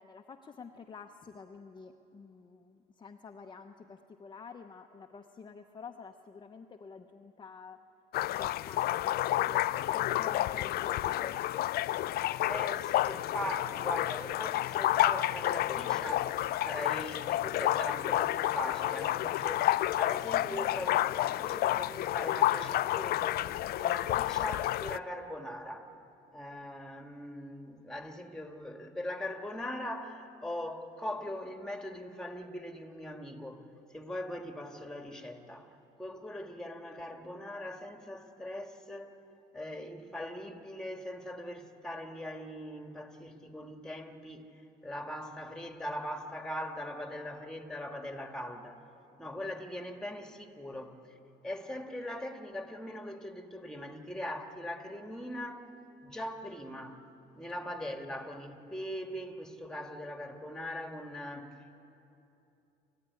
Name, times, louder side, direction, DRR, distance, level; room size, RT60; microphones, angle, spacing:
voice 1, 0.0-7.8 8.3-11.4, left 5 dB, 25° left, 4 dB, 0.8 m, -49 dB
sound 1, 8.1-25.0, left 14 dB, 65° left, 0.4 m, -30 dB
voice 2, 12.3-16.4 16.6-23.5 23.8-25.9 26.3-35.7 36.0-39.1 39.5-44.5 44.8-48.8 49.2-51.0 51.4-55.7 56.0-57.0 57.3-61.8, left 1 dB, 5° left, 5 dB, 2.0 m, -41 dB
28.0 x 14.5 x 9.6 m, 2.9 s
cardioid pair, 110°, 17 cm